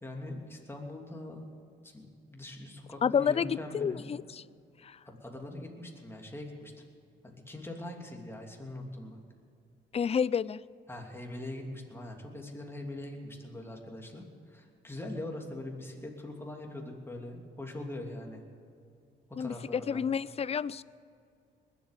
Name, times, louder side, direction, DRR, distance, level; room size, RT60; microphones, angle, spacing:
voice 1, 0.0-1.4 1.8-4.1 5.0-6.7 7.2-9.2 10.9-18.4 19.3-20.1, left 1 dB, 10° left, 1 dB, 2.9 m, -42 dB
voice 2, 3.0-4.2 9.9-10.6 19.4-19.5 19.9-20.8, left 7 dB, 30° left, 20 dB, 0.4 m, -29 dB
20.5 x 8.3 x 8.3 m, 2.4 s
cardioid pair, 90°, 20 cm